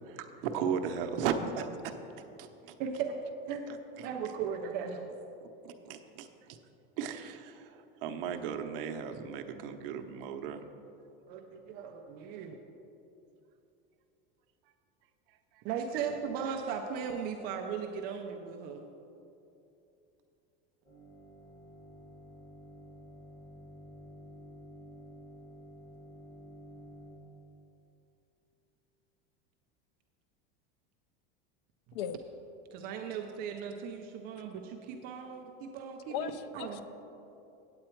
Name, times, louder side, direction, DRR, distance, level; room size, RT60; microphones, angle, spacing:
voice 1, 0.0-2.0 2.4-2.8 5.4-6.6 7.0-10.6, right 7 dB, 70° right, 6 dB, 0.8 m, -36 dB
voice 2, 2.8-3.2 3.5-3.7 4.0-5.0 11.3-12.6 15.6-18.8 32.7-36.8, right 7 dB, 30° right, 3 dB, 0.4 m, -37 dB
sound 1, 20.8-27.1, equal, 10° left, 2.1 m, -51 dB
voice 3, 36.1-36.8, left 9 dB, 75° left, 12 dB, 0.5 m, -37 dB
8.7 x 8.6 x 4.4 m, 2.8 s
cardioid pair, 180°, 29 cm